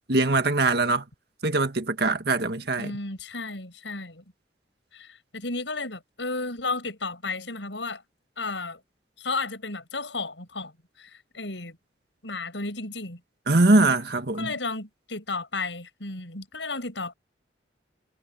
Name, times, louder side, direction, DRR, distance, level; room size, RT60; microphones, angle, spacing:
voice 1, 0.1-1.0 1.4-2.9 13.5-14.5, right 2 dB, 60° right, 1.8 m, -22 dB
voice 2, 2.8-4.2 4.9-8.0 8.4-8.8 9.2-10.7 11.0-11.8 12.2-13.2 14.4-17.1, left 3 dB, 80° left, 7.3 m, -33 dB
head